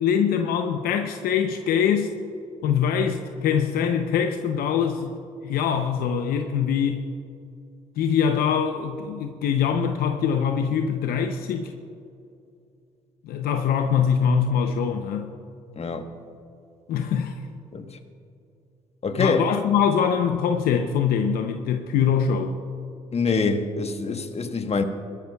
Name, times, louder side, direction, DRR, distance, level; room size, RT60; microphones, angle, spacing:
voice 1, 0.0-2.1 2.6-5.1 5.4-7.1 8.0-11.7 13.2-15.3 16.9-17.4 19.2-22.5, left 7 dB, 70° left, 6 dB, 0.7 m, -23 dB
voice 2, 15.8-16.1 17.7-18.0 19.0-19.4 23.1-24.8, left 4 dB, 40° left, 7 dB, 1.3 m, -25 dB
20.0 x 13.0 x 2.4 m, 2.5 s
hypercardioid pair, 50°, 16 cm